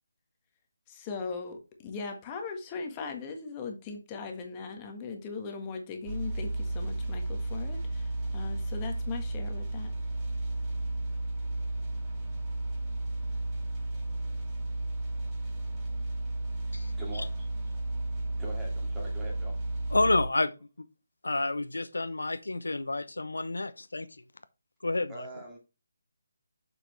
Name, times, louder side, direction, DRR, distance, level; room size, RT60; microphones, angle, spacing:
voice 1, 0.9-9.9, left 4 dB, 20° left, 1.5 m, -39 dB
sound 1, 6.0-20.3, right 2 dB, 25° right, 3.0 m, -33 dB
voice 2, 17.0-17.5 18.4-19.6 25.1-25.6, right 2 dB, 10° right, 2.4 m, -43 dB
voice 3, 19.9-20.5 20.8-20.9 21.2-24.1 24.8-25.3, left 2 dB, 85° left, 0.8 m, -29 dB
6.9 x 6.0 x 3.3 m
figure-of-eight pair, 160°, 0 cm